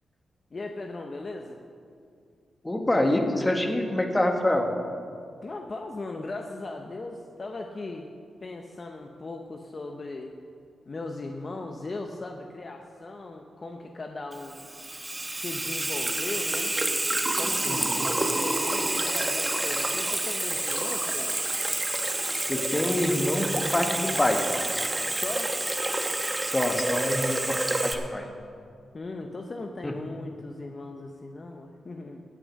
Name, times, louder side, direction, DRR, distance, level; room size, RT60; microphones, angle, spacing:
voice 1, 0.5-1.6 5.4-8.1 8.4-10.3 10.9-14.6 15.4-16.7 17.3-21.4 25.1-25.6 28.9-32.2, left 2 dB, 40° left, 3 dB, 0.8 m, -38 dB
voice 2, 2.6-4.7 17.6-18.0 22.5-24.4 26.4-28.3 29.8-29.9, left 1 dB, 15° left, 3 dB, 1.5 m, -26 dB
Water tap faucet / Sink (filling or washing), 14.3-27.9, right 2 dB, 20° right, 1.0 m, -28 dB
16.5 x 6.4 x 6.4 m, 2.3 s
cardioid pair, 75°, 0 cm